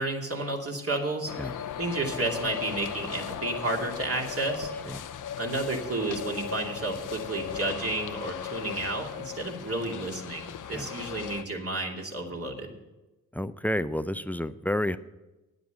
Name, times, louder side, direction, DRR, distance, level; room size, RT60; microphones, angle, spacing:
voice 1, 0.0-1.5 1.8-4.7 5.4-12.7, right 2 dB, 35° right, 0 dB, 2.6 m, -31 dB
sound 1, 1.3-11.4, left 9 dB, 55° left, 0.8 m, -37 dB
voice 2, 13.3-15.0, left 1 dB, 5° left, 14 dB, 0.4 m, -30 dB
9.4 x 7.9 x 8.1 m, 1.0 s
hypercardioid pair, 45°, 39 cm